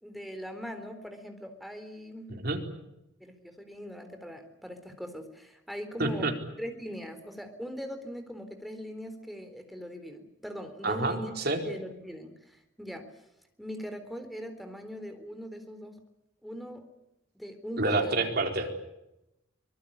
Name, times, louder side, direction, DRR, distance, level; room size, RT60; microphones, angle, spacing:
voice 1, 0.0-2.3 3.2-11.3 11.6-13.1 13.6-16.0 16.4-16.9 17.4-18.2, equal, ahead, 7 dB, 3.8 m, -40 dB
voice 2, 2.3-2.6 6.0-6.3 10.8-11.6 17.8-18.7, right 2 dB, 55° right, 4 dB, 4.4 m, -28 dB
24.5 x 22.5 x 8.7 m, 0.88 s
head